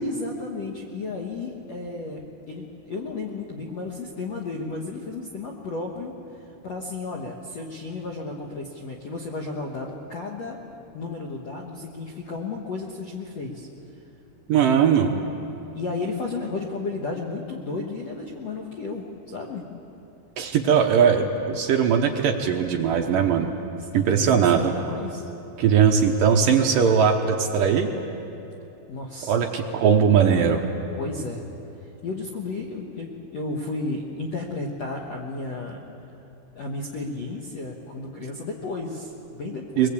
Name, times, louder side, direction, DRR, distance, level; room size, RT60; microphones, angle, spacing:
voice 1, 0.0-6.1 6.6-10.6 10.9-13.7 15.7-19.6 23.8-25.3 28.9-29.4 31.0-31.4 32.0-35.8 36.5-39.9, left 3 dB, 65° left, 1 dB, 1.6 m, -33 dB
voice 2, 14.5-15.1 20.4-23.5 23.9-24.7 25.6-27.9 29.3-30.6 39.8-39.9, right 7 dB, 75° right, 2 dB, 2.1 m, -20 dB
22.0 x 22.0 x 8.5 m, 2.9 s
omnidirectional pair, 5.2 m